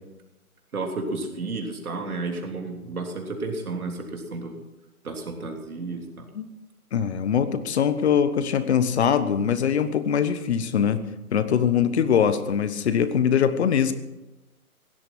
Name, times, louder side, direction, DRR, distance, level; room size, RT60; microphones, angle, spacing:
voice 1, 0.7-4.6 5.0-6.3, right 3 dB, 75° right, 2 dB, 3.4 m, -32 dB
voice 2, 6.9-11.0 11.3-13.9, left 8 dB, 45° left, 12 dB, 1.3 m, -22 dB
17.0 x 12.5 x 6.0 m, 1.0 s
figure-of-eight pair, 135°, 44 cm